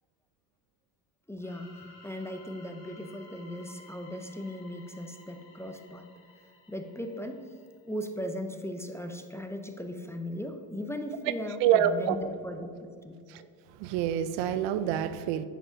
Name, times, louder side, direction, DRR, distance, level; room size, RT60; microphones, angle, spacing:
voice 1, 1.3-6.1 6.7-7.4 7.9-13.1, left 1 dB, 5° left, 0.6 m, -38 dB
sound 1, 1.4-8.0, left 2 dB, 75° left, 2.2 m, -55 dB
voice 2, 11.6-12.2 13.3-13.5 13.8-15.5, right 10 dB, 65° right, 0.6 m, -26 dB
8.9 x 4.9 x 5.0 m
supercardioid pair, 80°, 46 cm